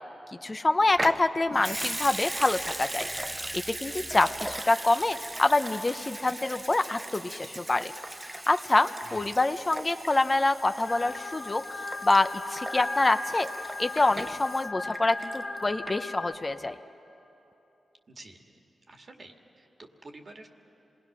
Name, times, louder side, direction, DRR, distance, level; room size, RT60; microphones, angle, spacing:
voice 1, 0.4-3.0 3.8-7.9 8.5-13.5 13.8-16.7, left 2 dB, 35° left, 8 dB, 0.8 m, -26 dB
Water tap faucet / Sink (filling or washing) / Liquid, 0.9-15.6 15.9-16.0, right 1 dB, 20° right, 0.6 m, -38 dB
voice 2, 9.0-9.4 18.1-18.4 18.9-20.5, right 2 dB, 50° right, 3 dB, 2.0 m, -49 dB
sound 1, 10.9-16.3, left 2 dB, 80° left, 2.0 m, -37 dB
27.0 x 20.0 x 6.1 m, 2.9 s
cardioid pair, 55°, 0 cm